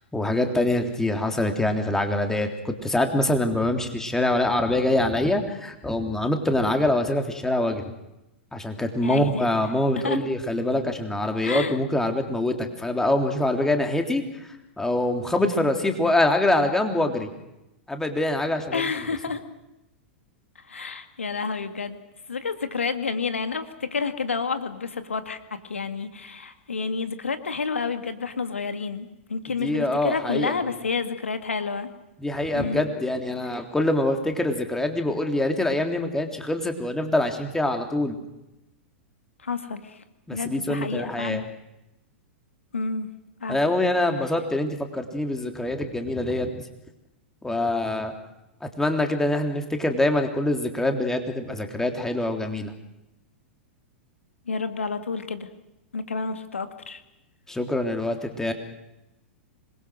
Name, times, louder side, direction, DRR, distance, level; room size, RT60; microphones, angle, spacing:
voice 1, 0.1-7.9 8.5-14.2 14.8-17.3 17.9-18.8 29.5-30.6 32.2-38.2 40.3-41.4 43.5-46.6 47.4-48.1 48.6-52.7 57.5-58.5, left 1 dB, 5° left, 4 dB, 3.4 m, -24 dB
voice 2, 9.0-9.4 10.0-10.2 11.4-11.8 18.7-19.4 20.7-22.0 22.3-31.9 32.5-32.8 39.4-40.0 40.3-41.4 42.7-43.1 43.4-43.6 54.5-55.5 55.9-57.0, left 4 dB, 90° left, 9 dB, 2.0 m, -29 dB
26.5 x 21.5 x 6.4 m, 0.93 s
hypercardioid pair, 105°, 7 cm